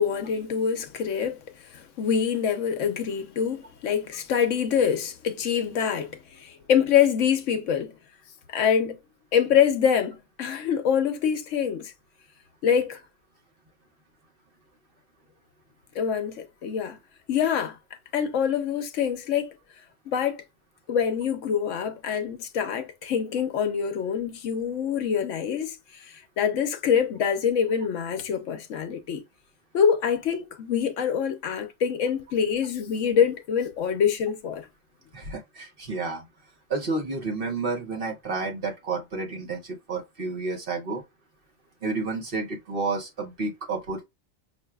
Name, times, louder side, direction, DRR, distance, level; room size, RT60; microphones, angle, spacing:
voice 1, 0.0-1.4 1.7-7.9 8.5-9.0 9.3-11.9 12.6-13.0 15.9-17.0 17.3-17.8 18.1-19.5 20.1-20.4 20.9-29.2 29.7-34.7, left 7 dB, 70° left, 1.0 m, -25 dB
voice 2, 35.1-36.2 36.7-41.0 41.8-44.0, right 3 dB, 45° right, 1.0 m, -30 dB
5.7 x 2.6 x 2.3 m
omnidirectional pair, 1.4 m